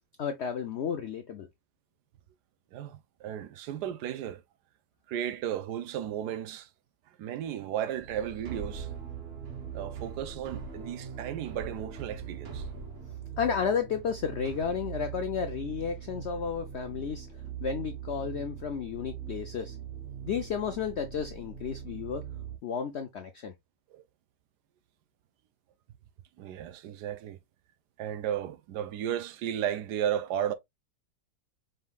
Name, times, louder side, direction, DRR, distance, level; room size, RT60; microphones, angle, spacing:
voice 1, 0.2-1.5 13.4-17.3 17.6-19.8 20.2-22.2 22.6-23.5, left 7 dB, 70° left, 0.6 m, -32 dB
voice 2, 2.7-4.4 5.1-6.7 7.2-8.9 9.7-12.7 23.9-24.0 26.4-27.4 28.0-30.5, right 10 dB, 80° right, 1.2 m, -34 dB
sound 1, 7.9-22.6, right 8 dB, 45° right, 0.9 m, -41 dB
5.3 x 3.6 x 2.3 m
omnidirectional pair, 1.8 m